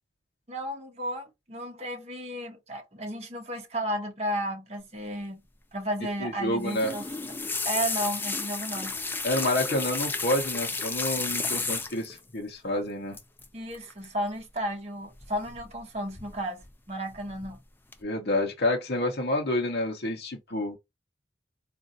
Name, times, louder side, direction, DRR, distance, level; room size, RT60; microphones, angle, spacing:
voice 1, 0.5-5.4 5.7-7.1 7.6-9.0 13.5-17.6, equal, 35° right, 0.9 m, -33 dB
voice 2, 6.2-6.9 9.2-13.2 18.0-20.8, left 1 dB, 60° left, 0.8 m, -28 dB
sound 1, 6.6-12.2 13.1-13.5 13.7-14.0 15.2-15.8 16.1-16.7 17.1-17.5 17.9-18.0, left 4 dB, 10° left, 0.4 m, -32 dB
4.0 x 2.5 x 2.5 m
head